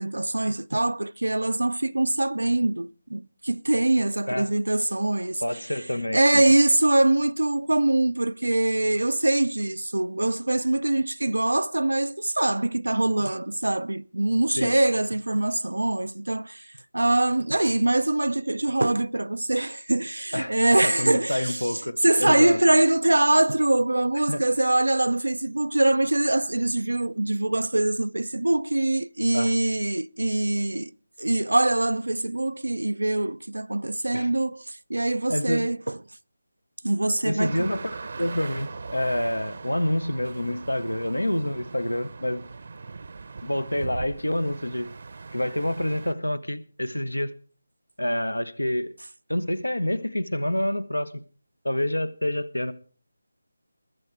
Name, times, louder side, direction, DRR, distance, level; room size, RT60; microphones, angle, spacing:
voice 1, 0.0-5.4 6.1-16.7 16.9-30.9 31.2-36.0 36.8-37.7, right 2 dB, 75° right, 0.5 m, -23 dB
voice 2, 5.4-6.4 14.6-14.7 20.3-22.6 24.3-24.4 29.3-29.5 34.1-34.3 35.3-35.7 37.2-42.4 43.4-44.9 45.3-47.3 48.0-48.9 49.3-51.2 51.6-52.7, left 1 dB, 85° left, 1.2 m, -27 dB
sound 1, 37.4-46.1, right 4 dB, 50° right, 0.9 m, -40 dB
21.5 x 7.9 x 4.7 m
figure-of-eight pair, 160°, 0 cm